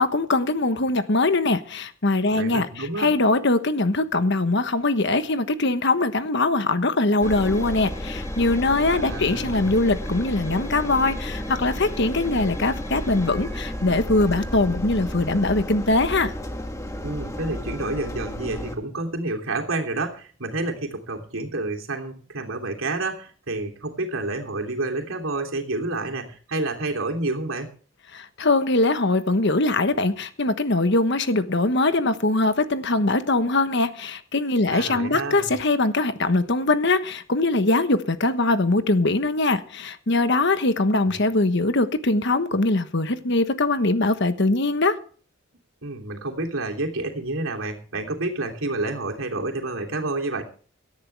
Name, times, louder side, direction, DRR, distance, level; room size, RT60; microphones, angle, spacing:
voice 1, 0.0-16.3 28.1-45.0, left 2 dB, 60° left, 1.2 m, -22 dB
voice 2, 2.3-3.1 9.0-9.7 17.0-27.7 34.7-35.5 41.1-41.2 45.8-50.4, right 2 dB, 85° right, 3.1 m, -29 dB
Engine, 7.2-18.8, equal, 15° left, 1.7 m, -32 dB
18.0 x 13.5 x 3.5 m
head